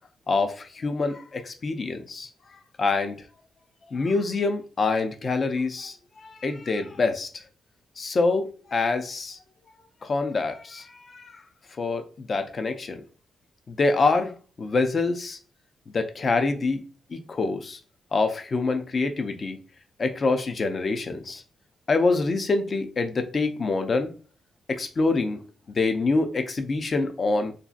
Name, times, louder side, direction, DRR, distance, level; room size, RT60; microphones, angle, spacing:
voice 1, 0.3-2.3 2.8-3.2 3.9-7.3 8.0-9.4 10.0-11.4 11.8-13.0 13.7-14.3 14.6-15.4 15.9-16.8 17.1-17.8 18.1-19.6 20.0-21.4 21.9-24.1 24.7-25.4 25.7-27.5, left 3 dB, 30° left, 0.4 m, -26 dB
3.0 x 2.6 x 2.4 m
wide cardioid pair, 180°, 0 cm